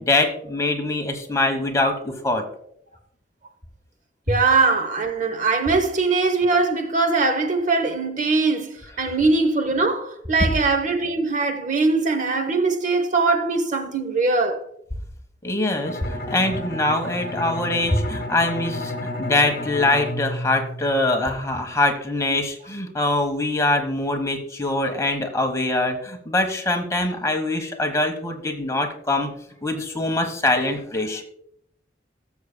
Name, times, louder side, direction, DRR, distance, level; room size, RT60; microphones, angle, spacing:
voice 1, 0.0-2.4 15.4-29.3 29.6-31.2, left 2 dB, 20° left, 1.2 m, -23 dB
voice 2, 4.3-14.6, right 3 dB, 45° right, 0.9 m, -21 dB
Bowed string instrument, 15.8-21.5, left 1 dB, 55° left, 1.3 m, -31 dB
17.0 x 7.2 x 2.2 m
head